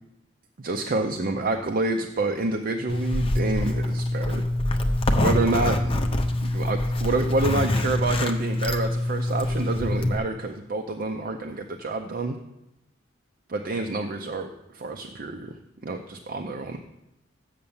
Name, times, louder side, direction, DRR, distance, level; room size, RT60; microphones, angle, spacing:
voice 1, 0.6-4.4 5.1-5.9 6.4-12.4 13.5-15.5 15.8-16.8, right 2 dB, 45° right, 4 dB, 0.5 m, -28 dB
Zipper (clothing), 2.9-10.2, left 1 dB, 30° left, 0.7 m, -25 dB
6.8 x 6.7 x 7.1 m, 0.90 s
head